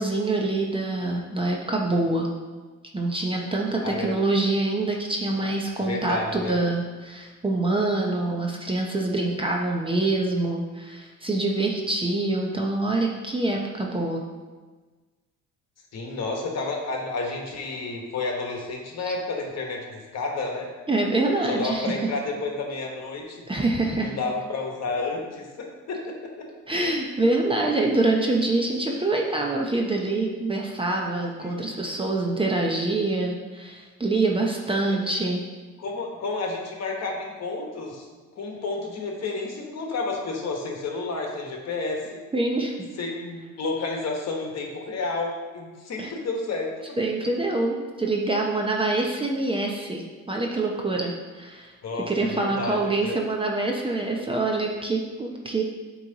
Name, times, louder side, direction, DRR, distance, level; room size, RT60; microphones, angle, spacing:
voice 1, 0.0-2.3 2.9-14.2 19.0-19.1 20.9-21.9 23.5-24.2 26.7-35.4 42.3-42.7 46.0-46.1 47.0-51.7 52.1-55.6, right 2 dB, 15° right, 0 dB, 0.8 m, -25 dB
voice 2, 3.8-4.1 5.8-6.6 15.9-20.7 21.5-23.4 24.0-26.5 31.4-31.9 34.9-35.0 35.8-38.1 38.4-42.2 43.0-46.7 51.8-53.2, left 3 dB, 50° left, 1 dB, 1.3 m, -31 dB
8.1 x 3.2 x 4.0 m, 1.3 s
supercardioid pair, 85°, 34 cm